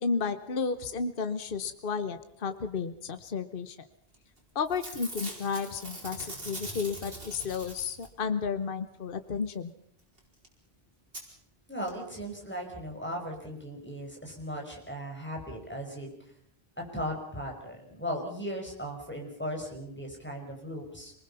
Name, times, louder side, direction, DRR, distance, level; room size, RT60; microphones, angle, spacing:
voice 1, 0.0-3.8 4.5-9.7, left 5 dB, 55° left, 10 dB, 1.2 m, -32 dB
Packing tape duct tape / Tearing, 4.1-4.4 4.6-8.2 10.2-10.3 10.4-10.5 11.1-11.2 11.9-12.0 12.2-12.3, right 1 dB, 60° right, 5.0 m, -42 dB
voice 2, 11.7-16.1 16.8-21.1, equal, 10° left, 1 dB, 5.5 m, -37 dB
27.0 x 20.5 x 5.7 m, 0.69 s
omnidirectional pair, 1.1 m